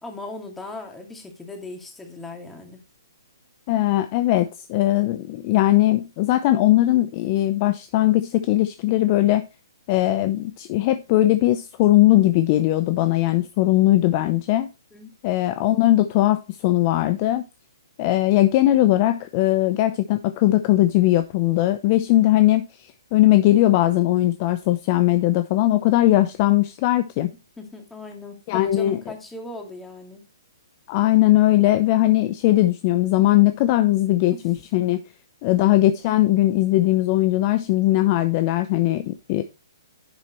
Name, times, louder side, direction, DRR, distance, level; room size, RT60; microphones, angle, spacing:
voice 1, 0.0-2.8 14.9-15.1 27.6-30.2 34.3-34.4, left 2 dB, 5° left, 2.4 m, -38 dB
voice 2, 3.7-9.5 9.9-14.7 15.2-17.4 18.0-22.7 23.1-27.3 28.5-29.0 30.9-35.0 35.4-39.4, left 15 dB, 35° left, 0.7 m, -19 dB
10.5 x 7.4 x 3.1 m
hypercardioid pair, 140°, 2 cm